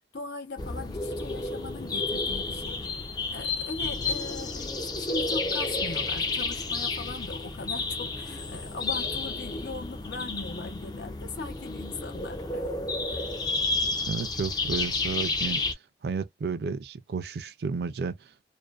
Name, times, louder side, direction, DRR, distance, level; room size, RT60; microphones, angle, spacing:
voice 1, 0.1-2.8 3.3-12.6 13.1-13.4, left 3 dB, 80° left, 0.7 m, -39 dB
sound 1, 0.6-15.7, left 3 dB, 25° left, 0.3 m, -31 dB
voice 2, 13.7-15.6 16.0-18.3, right 5 dB, 65° right, 0.4 m, -32 dB
2.5 x 2.1 x 2.3 m
head